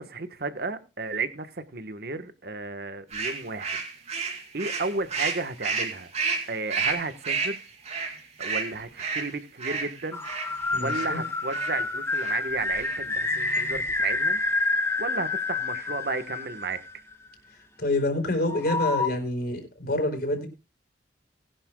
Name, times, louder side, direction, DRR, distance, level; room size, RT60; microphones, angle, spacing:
voice 1, 0.0-3.8 4.1-4.3 4.5-6.1 6.5-7.6 8.4-10.2 10.8-14.4 15.0-16.8, right 3 dB, 55° right, 1.2 m, -33 dB
sound 1, 3.1-11.1 11.5-11.8 12.1-12.4 12.7-13.0 13.3-13.8, right 4 dB, 35° right, 2.6 m, -31 dB
sound 2, 10.1-17.3 18.5-19.1, left 3 dB, 15° left, 1.4 m, -28 dB
voice 2, 10.7-11.2 17.8-20.5, left 1 dB, 55° left, 4.1 m, -27 dB
20.0 x 11.0 x 2.2 m
head